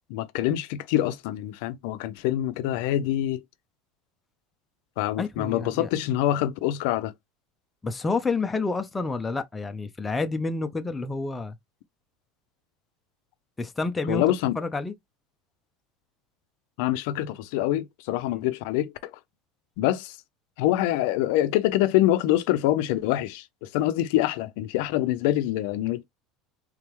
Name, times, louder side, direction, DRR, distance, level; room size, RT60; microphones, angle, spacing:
voice 1, 0.1-3.4 5.0-7.1 14.1-14.6 16.8-19.1 19.8-20.2 20.6-26.1, left 14 dB, 75° left, 0.5 m, -25 dB
voice 2, 5.2-5.9 7.8-11.6 13.6-14.2 14.5-14.9, left 3 dB, 10° left, 0.6 m, -29 dB
3.7 x 3.4 x 3.0 m
cardioid pair, 145°, 0 cm